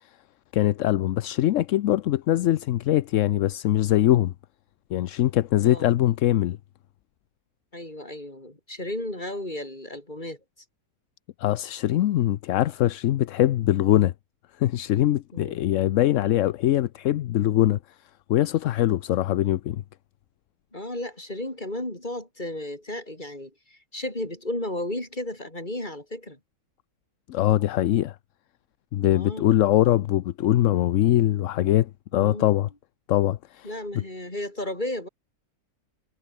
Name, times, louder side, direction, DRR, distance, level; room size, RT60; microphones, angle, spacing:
voice 1, 0.5-4.3 4.9-6.6 11.4-14.1 14.6-17.8 18.3-19.8 27.3-28.2 28.9-32.7 33.1-33.7, left 13 dB, 65° left, 0.9 m, -22 dB
voice 2, 5.6-5.9 7.7-10.4 15.3-15.7 20.7-26.4 29.1-29.5 32.1-32.5 33.6-35.1, left 1 dB, 30° left, 6.4 m, -34 dB
omnidirectional pair, 1.6 m